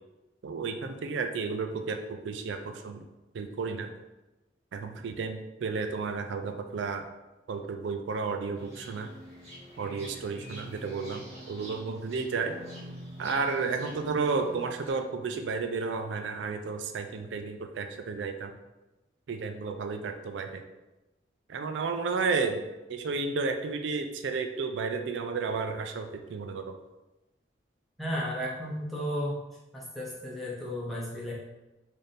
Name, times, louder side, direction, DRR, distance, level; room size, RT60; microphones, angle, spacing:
voice 1, 0.4-3.1 3.3-3.9 4.7-7.0 7.5-9.1 9.8-12.6 13.2-18.5 19.3-20.6 21.5-22.6 22.9-26.7, right 4 dB, 80° right, 6 dB, 0.4 m, -32 dB
sound 1, 8.5-14.9, equal, 35° right, 1.1 m, -46 dB
voice 2, 28.0-29.4 29.7-31.3, equal, ahead, -6 dB, 0.8 m, -33 dB
3.3 x 2.6 x 4.1 m, 1.0 s
head